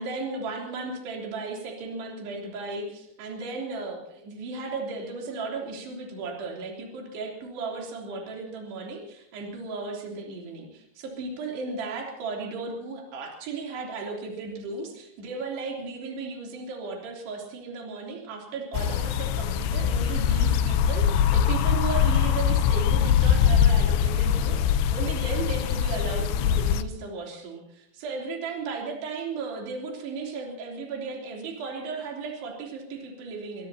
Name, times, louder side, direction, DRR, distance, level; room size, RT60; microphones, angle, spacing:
voice 1, 0.0-33.7, right 4 dB, 65° right, 0 dB, 5.3 m, -35 dB
sound 1, 18.7-26.8, left 8 dB, 80° left, 3.0 m, -22 dB
23.0 x 21.5 x 2.9 m, 0.77 s
omnidirectional pair, 5.1 m